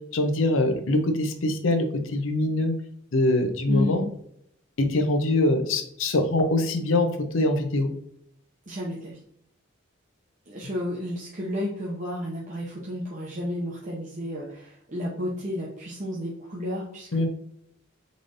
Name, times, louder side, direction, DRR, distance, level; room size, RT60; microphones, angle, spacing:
voice 1, 0.1-2.7 3.1-4.0 4.8-7.1 7.3-7.9 17.1-17.3, left 2 dB, 75° left, 6 dB, 0.6 m, -23 dB
voice 2, 3.7-4.1 8.7-9.2 10.5-17.3, left 1 dB, 40° right, -4 dB, 0.7 m, -32 dB
3.9 x 3.2 x 2.5 m, 0.71 s
head